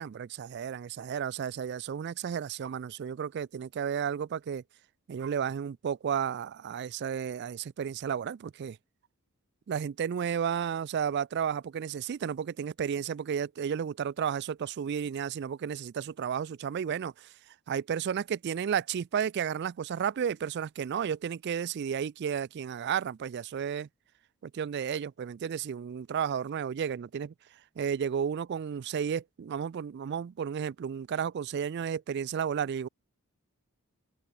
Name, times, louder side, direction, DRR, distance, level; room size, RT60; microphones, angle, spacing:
voice 1, 0.0-4.6 5.1-8.8 9.7-17.3 17.7-23.9 24.4-27.3 27.8-32.9, right 7 dB, 50° right, 0.3 m, -32 dB
head